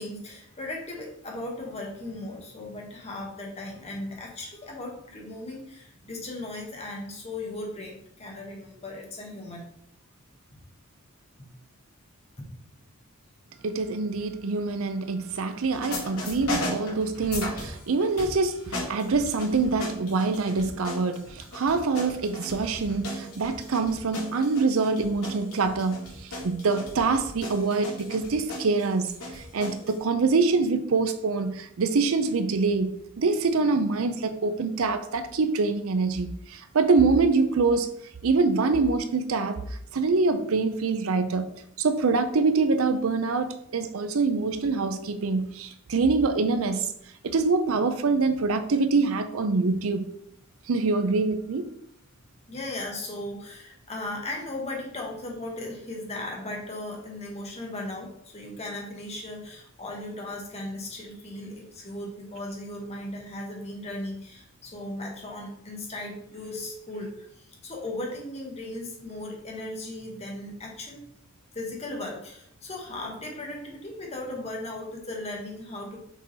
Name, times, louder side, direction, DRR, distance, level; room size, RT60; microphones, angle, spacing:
voice 1, 0.0-9.6 11.4-11.5 52.5-71.0 71.5-76.0, left 1 dB, 30° left, 1.4 m, -37 dB
voice 2, 13.6-37.9 38.2-39.6 39.9-46.9 47.2-50.1 50.7-51.7, right 4 dB, 75° right, 0.6 m, -25 dB
sound 1, 15.7-17.8 18.2-30.0, left 1 dB, 85° left, 2.5 m, -37 dB
6.2 x 3.8 x 4.1 m
head